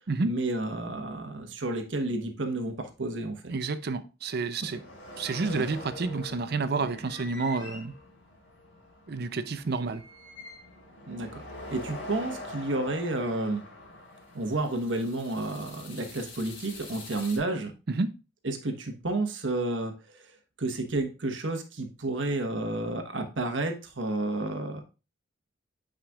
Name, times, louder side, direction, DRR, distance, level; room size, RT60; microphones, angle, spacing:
voice 1, 0.2-3.5 5.5-5.6 11.1-11.4 11.7-13.6 14.3-17.7 18.4-20.3 20.6-24.8, right 2 dB, 80° right, 1.2 m, -31 dB
voice 2, 3.5-4.8 5.2-7.9 9.1-10.0 17.9-18.1, right 4 dB, 55° right, 0.6 m, -29 dB
sound 1, 4.5-17.4, left 1 dB, 80° left, 2.4 m, -44 dB
8.9 x 5.0 x 2.4 m
head